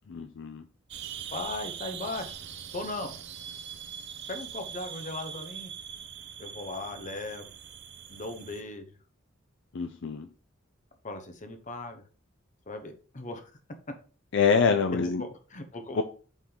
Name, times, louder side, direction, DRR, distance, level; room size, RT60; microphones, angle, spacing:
voice 1, 0.1-0.6 9.7-10.3 14.3-15.2 15.9-16.0, left 5 dB, 65° left, 8 dB, 0.5 m, -25 dB
sound 1, 0.9-8.6, right 8 dB, 60° right, 0.6 m, -42 dB
voice 2, 1.3-2.4 2.7-3.1 4.3-5.7 6.4-7.5 8.1-8.9 11.0-12.0 12.7-13.5 14.9-16.0, left 2 dB, 40° left, 7 dB, 1.0 m, -38 dB
7.2 x 3.7 x 3.9 m, 0.38 s
head